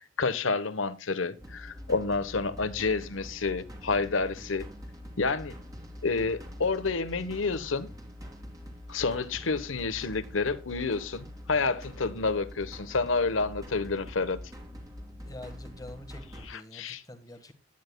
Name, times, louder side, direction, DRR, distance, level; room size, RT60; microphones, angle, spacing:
voice 1, 0.0-4.7 5.2-5.5 6.0-7.9 8.9-14.4 16.5-17.0, left 4 dB, 85° left, 1.2 m, -29 dB
sound 1, 1.4-16.5, equal, 20° right, 2.7 m, -44 dB
voice 2, 15.2-17.5, left 1 dB, 20° left, 1.6 m, -46 dB
16.0 x 10.5 x 2.3 m
head